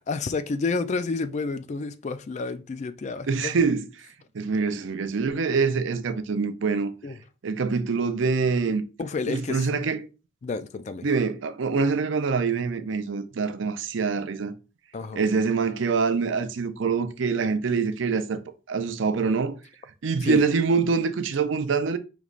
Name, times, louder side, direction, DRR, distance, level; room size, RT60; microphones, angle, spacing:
voice 1, 0.1-3.6 7.0-7.2 9.0-9.7 10.4-11.1 14.9-15.2 20.2-20.4, left 4 dB, 35° left, 0.3 m, -30 dB
voice 2, 3.3-4.1 4.3-6.9 7.4-8.8 9.3-10.1 11.0-14.5 15.1-18.4 18.7-19.6 20.0-22.0, right 5 dB, 65° right, 0.5 m, -25 dB
5.1 x 3.0 x 2.4 m
head